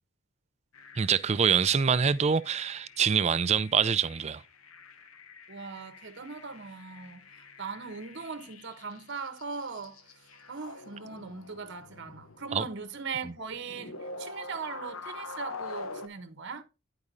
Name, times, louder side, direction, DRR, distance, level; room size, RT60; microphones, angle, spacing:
sound 1, 0.7-16.1, left 3 dB, 70° left, 0.9 m, -46 dB
voice 1, 1.0-4.4 12.5-12.7, right 6 dB, 30° right, 0.4 m, -25 dB
voice 2, 5.5-7.2 7.6-10.0 10.5-16.6, right 5 dB, 55° right, 1.0 m, -39 dB
10.5 x 4.8 x 4.0 m
head